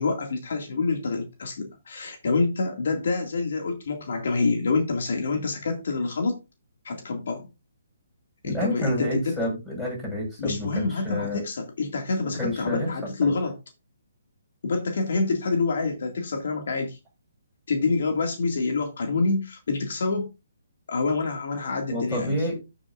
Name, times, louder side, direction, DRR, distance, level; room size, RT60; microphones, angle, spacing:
voice 1, 0.0-6.4 6.8-7.5 8.4-9.4 10.4-13.6 14.6-17.0 17.7-20.3 20.9-22.5, left 3 dB, 60° left, 2.1 m, -27 dB
voice 2, 8.4-11.4 12.4-12.9 13.2-13.3 21.9-22.6, left 1 dB, 5° left, 6.2 m, -29 dB
13.5 x 7.0 x 2.5 m
hypercardioid pair, 165°, 0 cm